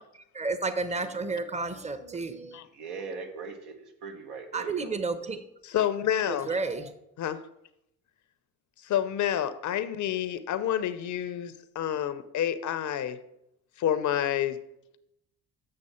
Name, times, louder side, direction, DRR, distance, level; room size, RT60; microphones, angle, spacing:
voice 1, 0.3-2.6 4.5-5.4 6.3-6.9, right 3 dB, 15° right, 0.8 m, -31 dB
voice 2, 2.7-5.0, right 5 dB, 75° right, 1.4 m, -40 dB
voice 3, 5.6-6.5 7.2-7.4 8.8-13.2 13.8-14.6, left 10 dB, 50° left, 0.7 m, -29 dB
7.6 x 6.1 x 4.3 m
supercardioid pair, 75°, 38 cm